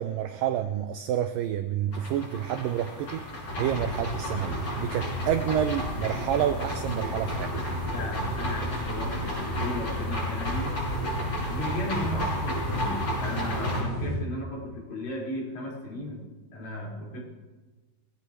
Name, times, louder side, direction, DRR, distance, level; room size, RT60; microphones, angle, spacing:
voice 1, 0.0-7.6, right 10 dB, 80° right, 8 dB, 2.0 m, -29 dB
sound 1, 1.9-13.8, equal, 30° left, 7.2 m, -33 dB
sound 2, 3.5-14.2, left 1 dB, 85° left, 5.3 m, -34 dB
sound 3, 5.3-12.8, equal, 5° right, 3.5 m, -42 dB
voice 2, 7.9-10.7 11.5-16.2 16.5-17.2, left 1 dB, 50° left, -4 dB, 5.9 m, -35 dB
22.5 x 17.0 x 3.1 m, 1.2 s
omnidirectional pair, 4.5 m